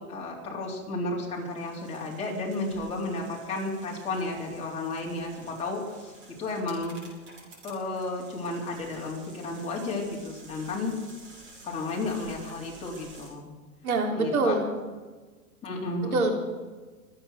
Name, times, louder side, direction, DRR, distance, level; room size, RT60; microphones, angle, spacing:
voice 1, 0.1-7.0 7.6-10.9 11.6-13.5 14.1-14.5 15.6-16.2, left 2 dB, 15° left, -4 dB, 3.6 m, -33 dB
sound 1, 1.3-13.3, right 2 dB, 40° right, 6.5 m, -51 dB
voice 2, 13.8-14.7 16.0-16.4, right 3 dB, 90° right, 3 dB, 3.6 m, -25 dB
24.5 x 8.8 x 6.5 m, 1.3 s
supercardioid pair, 160°, 42 cm